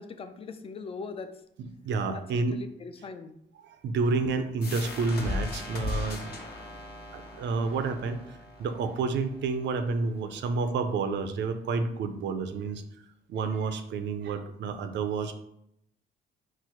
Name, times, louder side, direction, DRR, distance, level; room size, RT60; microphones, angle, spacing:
voice 1, 0.0-1.4 2.1-3.4, left 4 dB, 30° left, 9 dB, 0.4 m, -40 dB
voice 2, 1.6-2.6 3.6-6.3 7.1-8.2 8.6-12.8 13.3-15.3, right 4 dB, 65° right, 8 dB, 0.5 m, -29 dB
sound 1, 4.6-10.0, left 2 dB, 50° left, 0.9 m, -37 dB
4.5 x 2.0 x 4.3 m, 0.78 s
cardioid pair, 90°, 20 cm